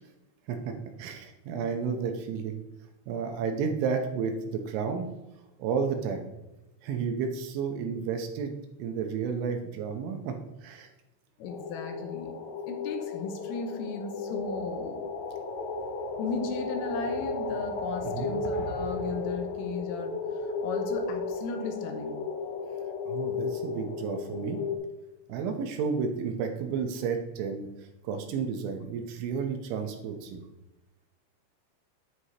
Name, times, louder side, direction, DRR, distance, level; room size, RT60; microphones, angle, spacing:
voice 1, 0.5-2.6 3.1-5.1 5.6-6.2 6.8-8.5 8.8-10.3 10.6-10.9 18.0-18.3 23.1-24.6 25.3-30.4, right 6 dB, 80° right, 5 dB, 3.0 m, -32 dB
voice 2, 11.4-12.3 12.7-15.0 16.2-22.2, left 4 dB, 80° left, 4 dB, 3.5 m, -36 dB
sound 1, 11.5-24.8, left 3 dB, 65° left, 2.9 m, -34 dB
9.6 x 9.5 x 2.8 m, 1.0 s
omnidirectional pair, 5.9 m